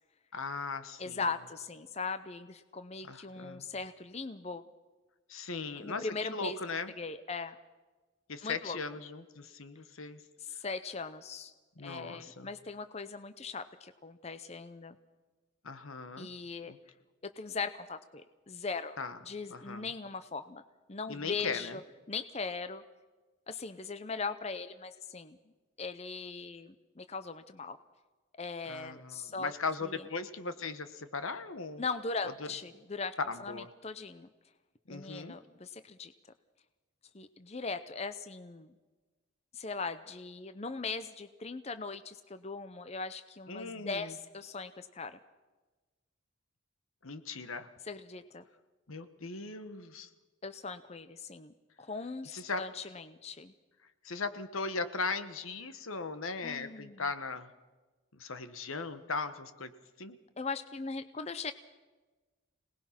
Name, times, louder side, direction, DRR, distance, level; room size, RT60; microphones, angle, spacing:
voice 1, 0.3-1.2 3.0-3.7 5.3-6.9 8.3-10.2 11.8-12.5 15.6-16.3 16.6-16.8 19.0-19.2 19.5-19.9 21.1-21.8 28.6-31.8 32.4-32.5 33.3-33.7 34.9-35.3 43.5-44.1 47.0-47.7 48.9-50.1 52.3-52.6 54.0-57.5 58.1-59.7 60.0-60.2, left 4 dB, 80° left, 11 dB, 1.3 m, -38 dB
voice 2, 1.0-4.6 5.8-6.6 7.0-7.6 8.4-8.8 10.4-11.5 11.8-15.0 16.2-16.7 17.2-19.0 19.3-20.6 20.9-21.8 22.1-22.8 23.5-25.4 25.8-27.8 28.4-29.5 31.8-33.1 33.4-34.3 34.9-36.1 37.1-38.7 39.5-45.2 47.9-48.4 50.4-53.5 56.4-57.0 60.4-61.5, left 4 dB, 30° left, 11 dB, 0.6 m, -39 dB
26.0 x 19.0 x 5.9 m, 1.2 s
head